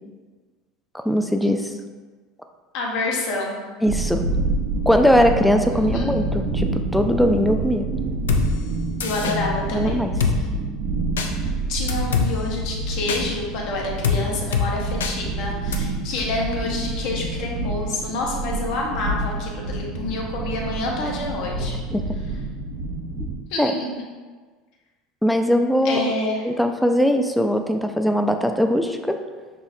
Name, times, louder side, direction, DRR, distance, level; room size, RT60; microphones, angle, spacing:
voice 1, 0.9-1.7 3.8-4.2 4.9-7.9 9.2-9.3 9.7-10.1 21.9-22.0 23.6-23.7 25.2-26.1 26.4-29.2, equal, 5° left, 5 dB, 0.3 m, -20 dB
voice 2, 2.7-3.6 5.7-6.1 8.8-10.0 11.4-21.8 23.5-23.9 25.8-26.4, left 2 dB, 65° left, -1 dB, 0.8 m, -28 dB
sound 1, 3.9-23.3, right 2 dB, 60° right, 0.4 m, -27 dB
Drum kit, 8.3-8.4 9.0-9.4 10.2-10.4 11.2-11.3 11.9-12.3 13.1-13.2 14.0-14.2 14.5-14.7 15.0-15.1 15.7-15.8, left 7 dB, 85° left, 0.3 m, -22 dB
5.6 x 2.0 x 2.6 m, 1.4 s
hypercardioid pair, 85°, 0 cm